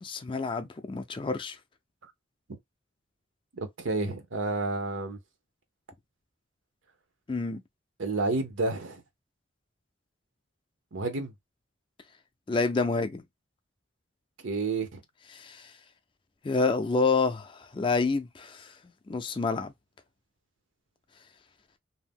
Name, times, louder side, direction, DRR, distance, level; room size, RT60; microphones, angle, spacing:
voice 1, 0.0-1.6 7.3-7.6 12.5-13.2 15.3-15.6 16.4-18.7 19.1-19.7, left 4 dB, 25° left, 0.3 m, -28 dB
voice 2, 3.8-5.2 8.0-9.0 10.9-11.3 14.4-15.0, right 3 dB, 85° right, 0.8 m, -30 dB
2.7 x 2.0 x 3.4 m
head